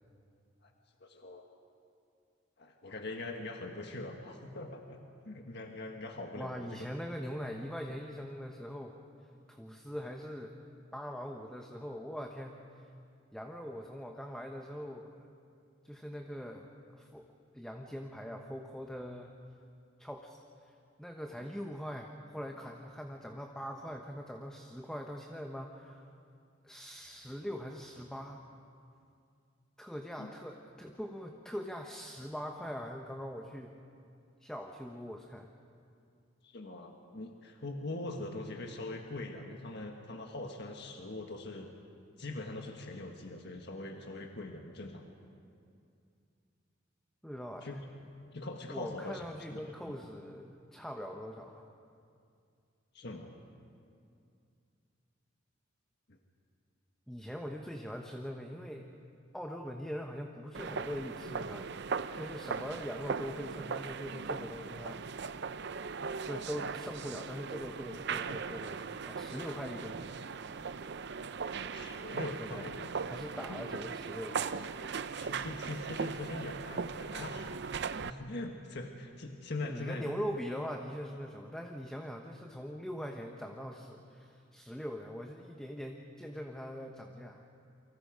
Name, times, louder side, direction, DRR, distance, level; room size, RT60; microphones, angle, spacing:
voice 1, 1.0-1.4 2.6-5.0 5.2-6.9 30.2-30.3 36.4-41.7 42.2-45.0 47.6-47.9 48.3-49.2 49.5-49.6 52.9-53.4 56.1-56.2 71.7-72.9 75.2-77.5 78.0-80.1, left 2 dB, 60° left, 3 dB, 1.6 m, -42 dB
voice 2, 6.4-9.0 9.5-10.6 10.9-12.8 13.3-15.3 15.8-16.7 16.9-17.3 17.5-19.3 20.0-20.4 20.7-26.1 26.6-28.4 29.8-33.7 34.4-35.5 47.2-47.7 48.7-51.7 57.1-58.9 59.3-61.7 62.1-65.3 66.3-70.6 72.4-72.7 73.0-74.6 79.6-87.4, equal, 5° left, 2 dB, 1.0 m, -42 dB
sound 1, 60.5-78.1, right 5 dB, 60° right, 0.6 m, -39 dB
29.0 x 24.5 x 5.1 m, 2.4 s
head